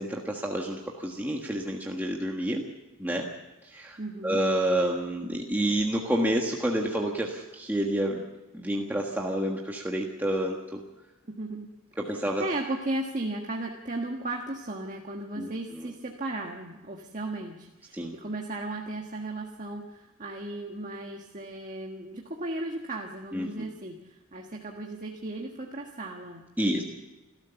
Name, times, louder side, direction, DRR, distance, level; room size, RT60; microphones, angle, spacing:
voice 1, 0.0-2.6 3.0-3.3 3.6-8.2 8.5-10.8 12.0-12.4 15.4-15.9 17.9-18.2 23.3-23.7 26.6-26.8, right 1 dB, 10° right, -1 dB, 1.5 m, -29 dB
voice 2, 4.0-4.4 11.4-11.7 12.1-26.8, right 2 dB, 35° right, 1 dB, 1.5 m, -36 dB
29.0 x 13.0 x 7.0 m, 1.1 s
head